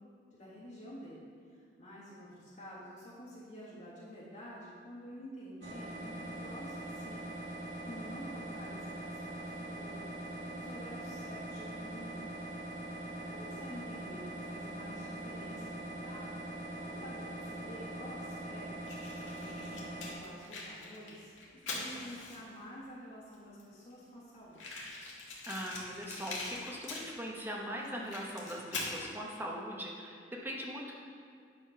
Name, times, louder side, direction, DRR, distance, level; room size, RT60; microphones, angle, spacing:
voice 1, 0.3-7.3 7.8-12.3 12.9-16.4 16.8-18.9 19.3-24.8, equal, 45° left, -10 dB, 1.7 m, -49 dB
sound 1, 5.6-20.1, right 1 dB, 70° right, 1.5 m, -42 dB
Fire, 18.8-22.6 23.3-23.4 23.6-23.7 23.9-24.0 24.5-27.4 27.8-29.0, left 3 dB, 80° left, 1.7 m, -42 dB
voice 2, 25.5-30.9, equal, 10° right, -2 dB, 1.0 m, -41 dB
9.7 x 4.3 x 5.6 m, 2.2 s
head